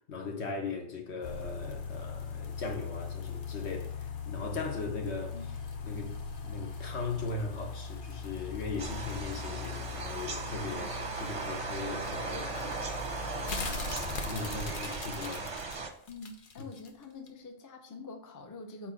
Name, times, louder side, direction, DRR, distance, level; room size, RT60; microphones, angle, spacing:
voice 1, 0.1-5.3 5.8-6.2 6.4-10.9 11.1-13.0 13.3-13.5 14.2-15.9 16.6-16.7, left 3 dB, 70° left, 1.3 m, -39 dB
sound 1, 1.2-16.9 17.3-17.4, left 4 dB, 55° left, 0.9 m, -40 dB
sound 2, 8.8-15.9, right 3 dB, 35° right, 0.6 m, -38 dB
voice 2, 13.4-14.0 14.3-14.5 14.8-14.9 16.1-18.9, left 3 dB, 20° left, 0.5 m, -46 dB
4.5 x 4.3 x 5.7 m
omnidirectional pair, 1.2 m